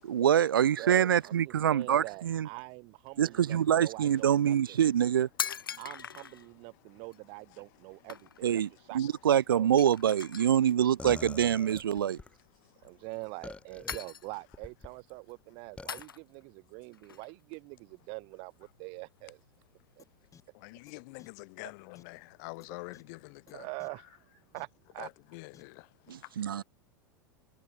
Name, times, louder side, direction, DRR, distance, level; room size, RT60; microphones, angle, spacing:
voice 1, 0.0-2.5 3.2-5.3 8.4-8.7 8.9-12.2 26.4-26.6, right 9 dB, 80° right, 0.4 m, -25 dB
voice 2, 0.8-4.8 5.8-9.0 9.3-9.7 12.8-19.4 20.0-20.1 23.5-25.1, right 30 dB, 50° right, 5.5 m, -44 dB
sound 1, 3.0-3.1 3.7-3.9 4.7-4.8 5.0-6.5 7.1-7.2 7.6-7.8 8.1-8.6 8.9-9.0 9.3-9.4 9.8-10.7 11.9-12.3 12.8-13.5 13.9-14.6 15.0-15.3 15.9-16.5 16.9-18.2 18.6-20.5, left 7 dB, 85° left, 1.2 m, -42 dB
voice 3, 3.8-4.2 4.7-4.8 5.3-8.1 8.6-9.2 9.8-9.9 10.4-10.9 11.6-13.1 20.5-24.1 25.0-26.6, left 30 dB, 55° left, 6.9 m, -50 dB
sound 2, 11.0-12.3 13.4-14.0 14.5-14.9 15.8-16.0, left 3 dB, 10° left, 1.6 m, -44 dB
sound 3, 20.0-20.1 20.3-20.4 20.9-21.0 21.2-21.3 22.0-22.1 22.6-22.7 22.9-23.0 23.5-23.6 23.8-23.9 24.6-24.7 25.5-25.6, left 8 dB, 30° left, 4.2 m, -56 dB
figure-of-eight pair, 90°, 11 cm